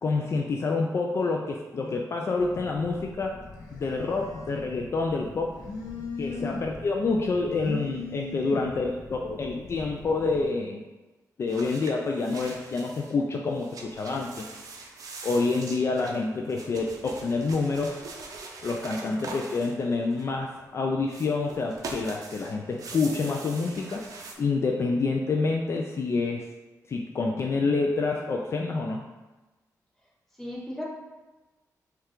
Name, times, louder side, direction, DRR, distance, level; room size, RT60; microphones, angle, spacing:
voice 1, 0.0-3.4 3.7-5.6 6.2-10.8 11.4-14.5 15.2-18.0 18.6-26.5 26.9-29.0, left 3 dB, 45° left, 1 dB, 0.4 m, -28 dB
Telephone, 2.4-10.4, left 3 dB, 75° left, 0.8 m, -40 dB
sound 1, 11.5-13.1 13.5-20.5 21.0-24.3, right 3 dB, 65° right, 0.6 m, -42 dB
voice 2, 30.4-30.9, left 1 dB, 5° left, -3 dB, 0.8 m, -36 dB
5.4 x 2.4 x 3.6 m, 1.1 s
wide cardioid pair, 155°, 6 cm